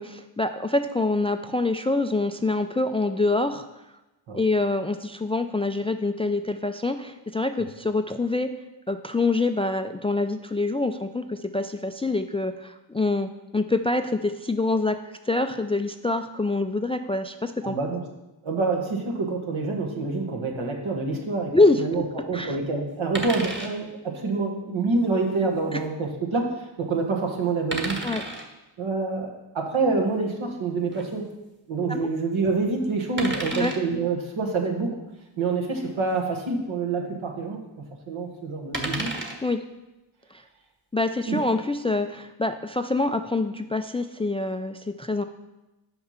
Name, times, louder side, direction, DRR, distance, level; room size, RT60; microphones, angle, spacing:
voice 1, 0.0-3.7 4.4-8.5 8.9-17.8 21.5-22.0 22.3-22.6 25.7-25.8 28.0-28.2 31.9-32.1 33.5-33.7 39.4-39.6 40.3-40.4 40.9-45.2, left 2 dB, 15° left, 8 dB, 0.3 m, -25 dB
voice 2, 17.6-18.0 18.4-21.5 21.8-26.5 26.8-28.0 28.8-31.3 31.7-35.0 35.4-37.6 38.1-39.1 41.3-41.4, right 3 dB, 70° right, 1 dB, 1.6 m, -27 dB
sound 1, 23.2-23.7 25.2-25.4 27.7-28.5 30.9-31.1 33.2-33.8 35.8-35.9 36.2-36.3 38.7-39.4 41.1-41.4, right 2 dB, 25° right, 1.5 m, -32 dB
5.8 x 5.4 x 5.7 m, 0.99 s
cardioid pair, 45°, 49 cm